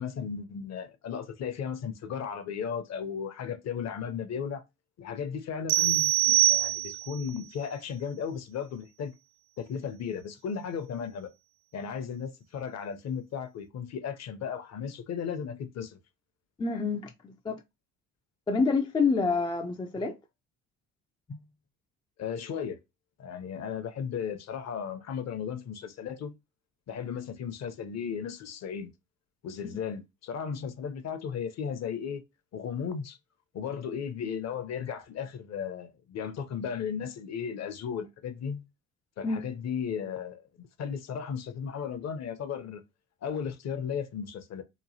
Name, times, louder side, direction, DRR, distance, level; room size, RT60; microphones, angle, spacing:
voice 1, 0.0-4.6 5.0-9.1 9.6-11.3 11.7-16.0 22.2-22.8 23.2-26.3 26.9-28.9 29.4-32.2 32.5-33.2 33.5-38.6 39.2-42.8 43.2-44.6, left 7 dB, 40° left, 0.7 m, -35 dB
sound 1, 5.7-7.2, right 15 dB, 55° right, 0.5 m, -24 dB
voice 2, 16.6-17.6 18.5-20.2 21.3-21.5 29.7-29.8 39.2-39.4, left 4 dB, 10° left, 0.3 m, -28 dB
3.0 x 2.2 x 2.7 m
hypercardioid pair, 60°, 40 cm